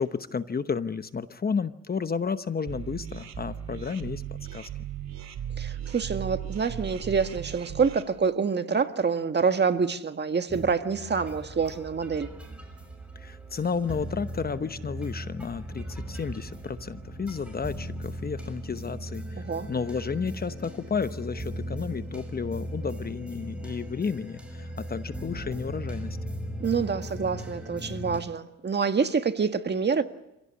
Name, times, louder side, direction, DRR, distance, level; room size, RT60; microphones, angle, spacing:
voice 1, 0.0-4.2 4.5-4.7 13.1-26.2, left 5 dB, 30° left, 1.0 m, -32 dB
sound 1, 2.7-8.0, right 9 dB, 60° right, 2.6 m, -37 dB
voice 2, 5.6-12.3 19.4-19.7 26.6-30.0, right 5 dB, 35° right, 1.6 m, -27 dB
sound 2, 10.5-28.2, equal, 5° right, 6.1 m, -38 dB
26.5 x 17.0 x 9.8 m
cardioid pair, 90°, 30 cm